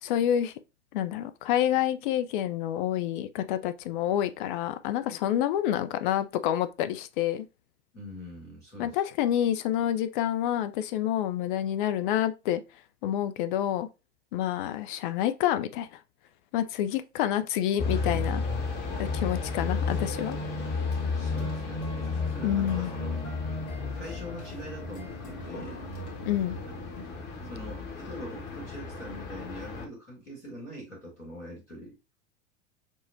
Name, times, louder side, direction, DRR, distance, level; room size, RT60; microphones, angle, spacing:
voice 1, 0.0-0.5 0.9-7.5 8.8-12.6 13.0-13.9 14.3-16.0 16.5-18.4 19.0-20.4 22.4-22.9 26.3-26.6, left 11 dB, 45° left, 0.5 m, -28 dB
voice 2, 7.9-9.0 21.1-21.9 22.2-23.2 23.9-25.8 27.4-32.0, equal, 90° left, 1.8 m, -43 dB
sound 1, 17.8-29.8, left 4 dB, 30° left, 0.9 m, -33 dB
sound 2, 21.2-27.0, left 1 dB, 70° left, 1.5 m, -45 dB
6.3 x 2.1 x 2.6 m
figure-of-eight pair, 85°, 36 cm